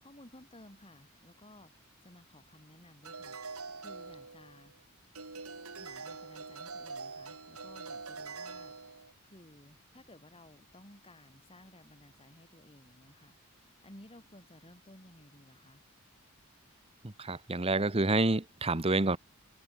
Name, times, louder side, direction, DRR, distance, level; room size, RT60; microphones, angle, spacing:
voice 1, 0.0-4.7 5.8-8.7 9.2-15.8, left 1 dB, 25° left, 5.7 m, -56 dB
sound 1, 3.0-4.7 5.1-9.1, right 4 dB, 85° right, 6.4 m, -44 dB
voice 2, 17.0-19.2, right 2 dB, 25° right, 1.1 m, -28 dB
head